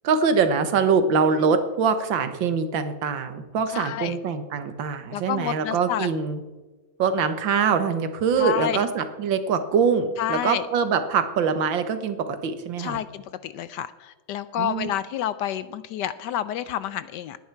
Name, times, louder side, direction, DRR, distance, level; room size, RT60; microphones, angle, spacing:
voice 1, 0.0-6.4 7.0-13.0 14.6-14.9, right 5 dB, 75° right, 9 dB, 1.8 m, -23 dB
voice 2, 3.7-4.2 5.1-6.1 8.4-8.8 10.2-10.7 12.8-17.4, left 11 dB, 70° left, 15 dB, 1.1 m, -29 dB
18.5 x 10.0 x 4.6 m, 1.2 s
omnidirectional pair, 2.1 m